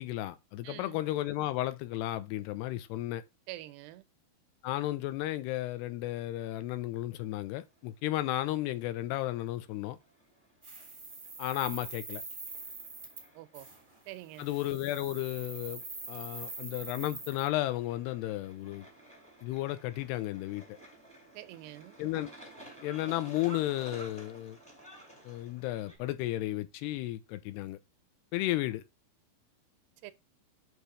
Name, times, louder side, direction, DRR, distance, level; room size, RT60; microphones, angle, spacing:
voice 1, 0.0-3.2 4.6-10.0 11.4-12.2 14.4-15.8 16.1-18.9 19.4-20.8 22.0-22.3 22.8-24.6 25.3-27.8 28.3-28.8, left 15 dB, 80° left, 2.6 m, -33 dB
voice 2, 0.6-1.0 3.5-4.1 13.4-13.7 14.1-14.5 21.3-22.0 30.0-30.1, right 16 dB, 85° right, 2.6 m, -45 dB
sound 1, 7.2-26.0, right 2 dB, 10° left, 0.4 m, -54 dB
sound 2, 10.6-13.3 13.5-13.8 14.3-17.5, right 3 dB, 40° right, 0.6 m, -44 dB
8.1 x 3.1 x 4.9 m
omnidirectional pair, 4.7 m